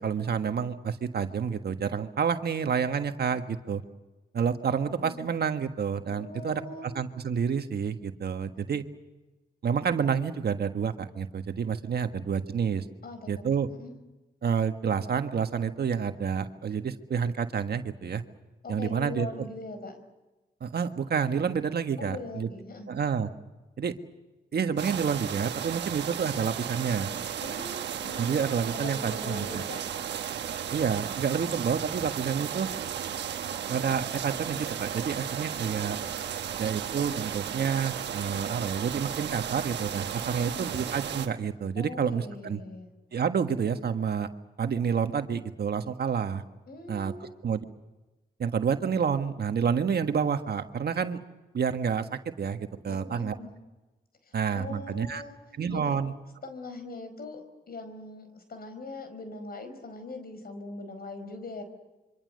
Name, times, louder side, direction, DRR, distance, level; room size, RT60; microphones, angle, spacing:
voice 1, 0.0-3.8 4.3-8.8 9.6-12.8 13.3-13.7 14.4-18.2 18.7-19.3 20.6-22.5 22.9-23.3 23.8-23.9 24.5-27.1 28.2-29.6 30.7-32.7 33.7-36.0 36.6-42.6 43.1-44.3 44.6-46.4 46.9-47.1 47.4-47.6 48.4-51.2 51.5-53.3 54.3-55.2 55.6-56.1, right 7 dB, 65° right, 7 dB, 1.6 m, -29 dB
voice 2, 6.1-6.9 13.0-13.9 18.6-20.0 22.0-22.9 27.4-28.3 28.7-29.8 40.4-40.7 41.7-42.9 46.7-47.4 52.9-53.5 54.2-55.3 55.7-56.0 56.4-61.6, left 2 dB, 60° left, 9 dB, 4.8 m, -41 dB
sound 1, 24.8-41.3, right 9 dB, 90° right, 1.2 m, -34 dB
26.5 x 25.0 x 6.6 m, 1.1 s
cardioid pair, 60°, 17 cm